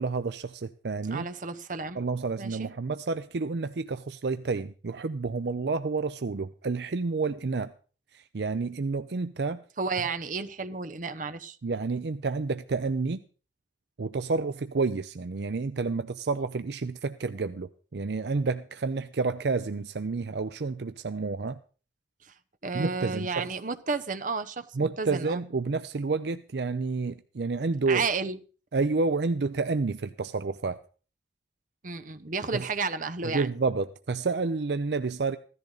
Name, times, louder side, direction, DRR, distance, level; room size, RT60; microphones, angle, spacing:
voice 1, 0.0-1.3 2.0-7.7 8.1-9.6 11.6-13.2 14.0-21.6 22.7-23.5 24.8-28.0 28.7-30.8 32.5-32.7 33.2-35.4, right 4 dB, 65° right, 0.5 m, -29 dB
voice 2, 1.1-2.0 2.4-2.7 9.8-11.6 22.2-22.3 22.6-25.4 27.9-28.4 31.8-33.5, right 4 dB, 45° right, 0.9 m, -32 dB
16.0 x 13.5 x 4.0 m
head